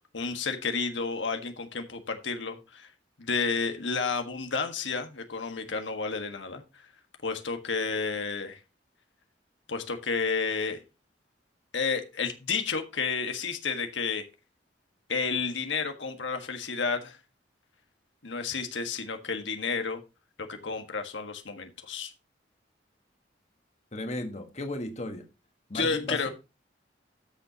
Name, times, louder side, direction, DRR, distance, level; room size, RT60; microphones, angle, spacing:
voice 1, 0.1-2.9 3.2-6.6 7.2-8.6 9.7-10.8 11.7-14.2 15.1-17.2 18.2-20.0 20.5-22.1 25.7-26.3, left 5 dB, 85° left, 1.5 m, -31 dB
voice 2, 23.9-25.3 25.7-26.3, left 1 dB, 40° left, 1.5 m, -35 dB
13.0 x 6.8 x 2.9 m
head